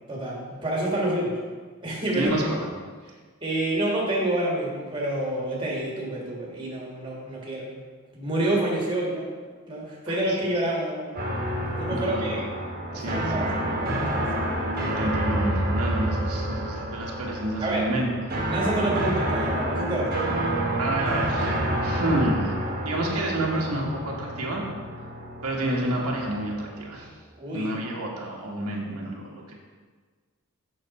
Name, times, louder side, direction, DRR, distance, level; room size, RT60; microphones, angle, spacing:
voice 1, 0.1-1.4 1.8-2.3 3.4-7.7 8.1-9.3 9.7-11.3 11.8-12.4 12.9-14.5 14.7-15.0 17.6-17.8 18.5-20.2 27.4-27.7, right 1 dB, 20° right, -4 dB, 1.5 m, -28 dB
voice 2, 2.1-2.7 10.1-10.4 11.9-12.4 12.9-13.5 15.0-18.5 20.8-22.6 22.8-24.6 25.4-27.1 27.5-29.5, right 1 dB, 90° right, -2 dB, 1.3 m, -29 dB
sound 1, 11.2-27.1, right 1 dB, 40° right, 1.3 m, -29 dB
6.5 x 6.3 x 4.2 m, 1.5 s
head